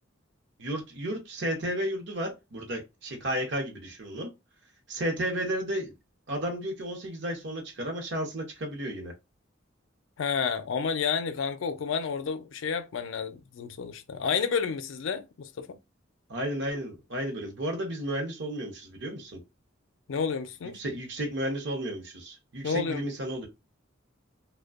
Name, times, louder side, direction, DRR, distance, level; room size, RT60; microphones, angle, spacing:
voice 1, 0.6-4.3 4.9-5.9 6.3-9.1 16.3-19.4 20.7-23.5, right 1 dB, 65° right, 0.8 m, -33 dB
voice 2, 10.2-15.8 20.1-20.8 22.6-23.1, left 6 dB, 80° left, 0.4 m, -30 dB
2.5 x 2.2 x 2.4 m
head